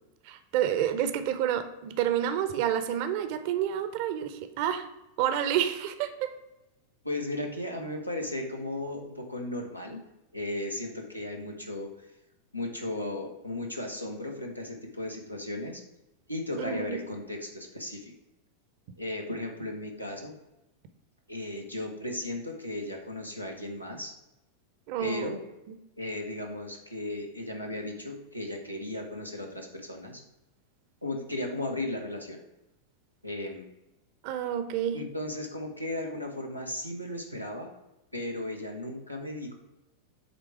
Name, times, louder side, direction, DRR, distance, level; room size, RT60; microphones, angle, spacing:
voice 1, 0.2-4.9 5.2-6.3 16.6-17.0 24.9-25.3 25.7-25.8 34.2-35.0, right 10 dB, 45° right, 10 dB, 0.7 m, -29 dB
voice 2, 7.0-10.0 10.3-12.1 12.5-15.8 16.3-18.1 19.0-20.4 21.3-24.1 25.0-25.4 26.0-30.2 31.0-32.4 33.2-33.7 34.9-37.7 38.1-39.5, left 1 dB, 90° left, 1 dB, 1.1 m, -35 dB
8.1 x 3.5 x 4.8 m, 0.94 s
figure-of-eight pair, 90°, 0 cm